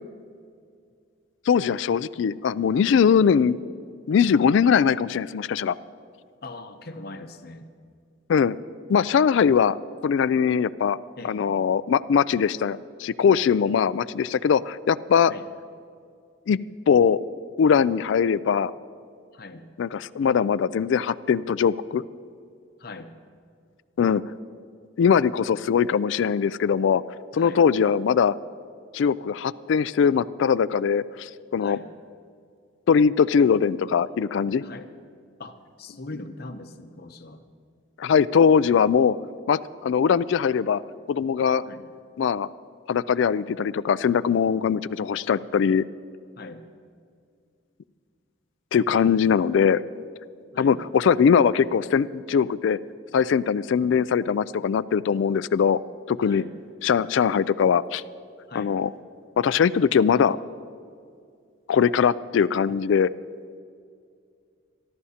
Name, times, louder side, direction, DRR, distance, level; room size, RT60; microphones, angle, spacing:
voice 1, 1.5-3.6 4.1-5.8 8.3-8.6 8.9-9.8 10.0-11.0 11.2-15.3 16.5-16.6 16.9-17.2 17.6-18.7 19.8-22.0 24.0-24.2 25.0-27.0 27.3-28.4 28.9-31.8 32.9-34.7 38.0-39.2 39.5-40.8 41.1-41.6 42.2-42.5 42.9-45.8 48.7-49.8 50.6-52.8 53.1-55.8 56.1-56.4 56.8-58.0 58.5-58.9 59.4-60.4 61.7-63.1, left 7 dB, 65° left, 17 dB, 0.3 m, -21 dB
voice 2, 6.4-7.7 11.2-11.6 15.3-15.5 19.3-19.7 22.8-23.1 27.3-27.7 31.6-31.9 34.6-34.9 35.4-37.4 41.7-41.8 46.4-46.6 50.5-50.8 56.2-56.5 58.5-58.8, left 2 dB, 50° left, 8 dB, 0.8 m, -41 dB
26.5 x 12.5 x 2.9 m, 2.3 s
head